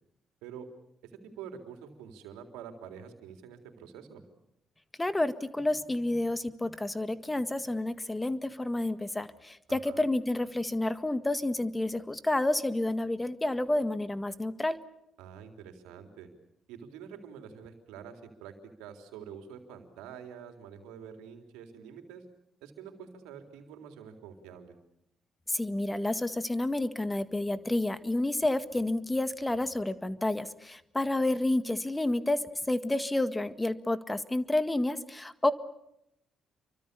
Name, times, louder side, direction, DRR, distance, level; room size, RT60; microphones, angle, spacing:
voice 1, 1.0-4.2 9.7-10.0 15.2-16.3 16.7-18.5 18.8-22.2 22.6-24.8, right 7 dB, 85° right, 5 dB, 3.6 m, -47 dB
voice 2, 5.0-14.8 25.5-35.5, left 2 dB, 15° left, 12 dB, 1.8 m, -30 dB
29.0 x 24.5 x 6.9 m, 0.83 s
hypercardioid pair, 55°, 0 cm